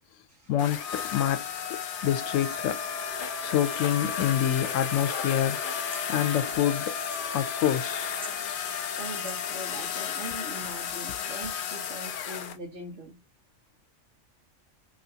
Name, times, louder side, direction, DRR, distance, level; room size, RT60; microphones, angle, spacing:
voice 1, 0.5-2.8 3.4-5.6 6.1-7.0 7.3-8.1, left 11 dB, 85° left, 0.9 m, -27 dB
sound 1, 0.6-12.6, left 8 dB, 60° left, 0.5 m, -33 dB
Wind instrument woodwind instrument, 2.0-8.4, right 7 dB, 50° right, 0.8 m, -43 dB
sound 2, 5.8-6.1 7.0-7.4 7.6-7.7 8.0-8.4 9.1-9.4 10.2-10.3 11.1-11.5, equal, 5° right, 0.5 m, -47 dB
voice 2, 9.0-13.2, right 1 dB, 80° right, 1.4 m, -41 dB
3.1 x 2.4 x 2.7 m
omnidirectional pair, 1.3 m